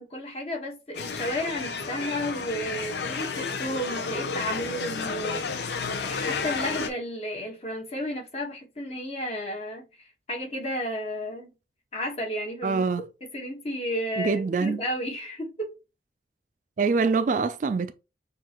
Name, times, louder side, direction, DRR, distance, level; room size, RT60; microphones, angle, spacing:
voice 1, 0.0-11.5 11.9-12.8 13.3-15.7, equal, 35° left, 1.2 m, -33 dB
sound 1, 0.9-6.9, left 5 dB, 70° left, 0.6 m, -31 dB
voice 2, 12.6-13.0 14.2-14.8 16.8-17.9, right 4 dB, 45° right, 0.3 m, -24 dB
6.6 x 2.5 x 2.9 m
head